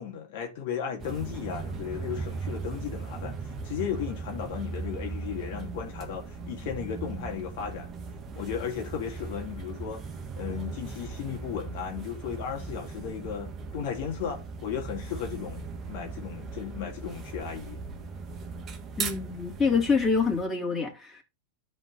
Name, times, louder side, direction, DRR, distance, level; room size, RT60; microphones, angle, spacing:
voice 1, 0.0-7.9 8.4-10.0 10.4-17.8, left 8 dB, 60° left, 1.8 m, -35 dB
sound 1, 1.0-20.4, right 4 dB, 25° right, 1.5 m, -38 dB
voice 2, 19.0-21.2, left 5 dB, 20° left, 3.0 m, -26 dB
12.5 x 4.3 x 3.8 m
hypercardioid pair, 105°, 0 cm